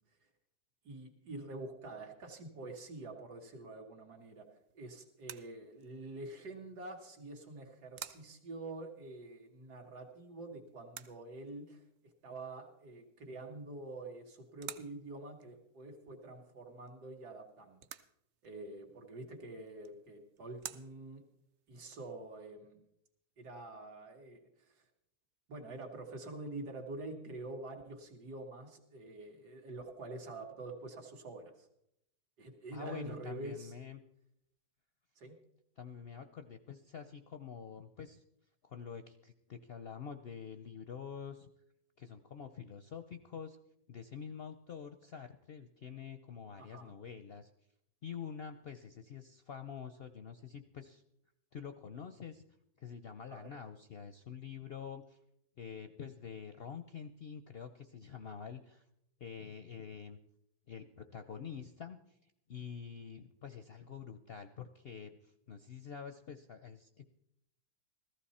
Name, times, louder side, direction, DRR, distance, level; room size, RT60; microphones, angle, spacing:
voice 1, 0.8-4.4 4.7-11.8 12.2-17.9 18.4-21.2 21.7-22.8 23.4-24.4 24.7-24.8 25.5-31.7 32.4-33.7 35.2-35.4 46.6-46.9 53.3-53.5, right 2 dB, 80° right, 2 dB, 2.3 m, -46 dB
sound 1, 4.2-22.4, right 9 dB, 60° right, 0.7 m, -55 dB
voice 2, 32.7-34.0 35.8-38.2 38.6-41.5 42.0-43.6 43.9-47.5 48.0-51.0 51.5-52.4 52.8-55.2 55.6-58.8 59.2-60.2 60.7-62.0 62.5-67.1, left 7 dB, 60° left, 8 dB, 0.6 m, -47 dB
15.0 x 14.5 x 4.2 m, 0.77 s
omnidirectional pair, 1.7 m